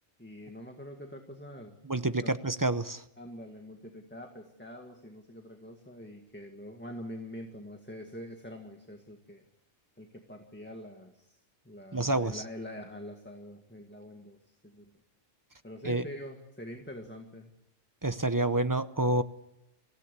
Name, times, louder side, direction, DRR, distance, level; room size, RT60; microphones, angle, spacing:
voice 1, 0.2-1.7 2.2-2.3 3.2-9.4 10.0-11.4 11.7-14.4 14.6-14.9 15.6-17.5, equal, 10° left, 3 dB, 1.8 m, -45 dB
voice 2, 1.8-3.0 11.9-12.4 15.8-16.0 18.0-19.2, right 2 dB, 20° right, 11 dB, 0.6 m, -28 dB
25.5 x 16.5 x 8.3 m, 0.87 s
omnidirectional pair, 1.4 m